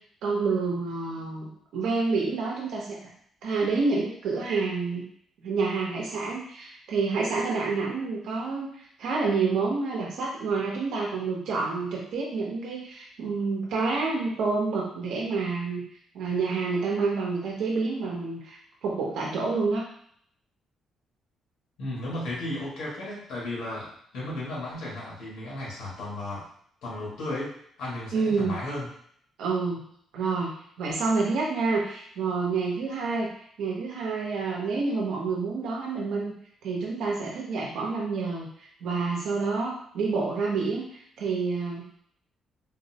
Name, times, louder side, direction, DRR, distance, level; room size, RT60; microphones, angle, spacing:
voice 1, 0.2-3.0 3.4-5.1 5.4-15.8 16.1-19.8 28.1-28.5 29.4-29.8 30.1-30.5 30.8-33.3 33.6-36.3 36.6-38.5 38.8-41.9, right 4 dB, 80° right, -3 dB, 0.7 m, -28 dB
voice 2, 21.8-26.5 26.8-27.5 27.8-28.9, left 1 dB, 80° left, -5 dB, 1.5 m, -34 dB
3.9 x 2.0 x 2.8 m, 0.63 s
cardioid pair, 170°, 0 cm